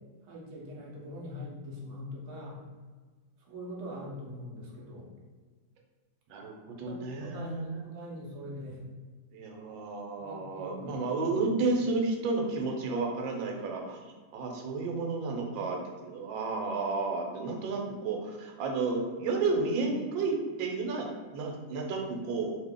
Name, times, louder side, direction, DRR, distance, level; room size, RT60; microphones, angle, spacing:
voice 1, 0.2-2.6 3.5-5.1 6.8-8.8 10.2-11.5, left 1 dB, 60° right, -3 dB, 0.8 m, -43 dB
voice 2, 6.3-7.7 9.3-14.0 14.3-22.6, right 3 dB, 85° right, 1 dB, 1.3 m, -32 dB
2.8 x 2.5 x 3.5 m, 1.4 s
omnidirectional pair, 2.0 m